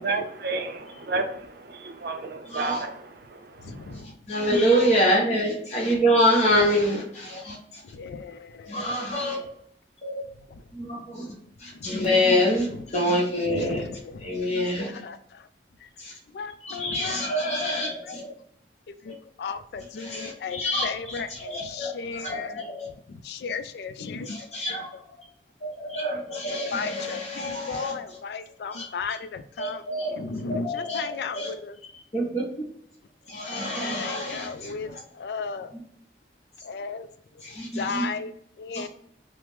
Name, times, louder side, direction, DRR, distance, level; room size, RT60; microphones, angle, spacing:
voice 1, 0.0-4.0, right 3 dB, 60° right, 5 dB, 0.5 m, -32 dB
voice 2, 2.5-2.8 3.9-7.6 8.7-9.4 10.0-10.2 10.7-11.3 11.6-13.8 14.2-15.0 16.0-16.1 16.6-18.3 19.1-19.2 20.0-22.9 24.3-24.9 25.6-28.0 28.7-28.9 29.6-30.1 30.5-31.5 32.1-32.7 33.3-34.7 37.4-38.1 38.7-38.9, equal, 40° left, -2 dB, 0.9 m, -26 dB
voice 3, 3.6-4.1 7.8-8.4 10.5-10.6 11.8-12.1 12.6-12.8 13.4-14.4 14.7-15.5 15.8-15.9 16.3-17.2 17.7-17.8 18.0-18.2 18.9-22.7 23.1-24.7 26.5-31.8 33.5-35.7 36.6-37.1 37.5-38.9, left 5 dB, 70° left, 11 dB, 0.3 m, -35 dB
3.2 x 2.0 x 3.0 m, 0.68 s
head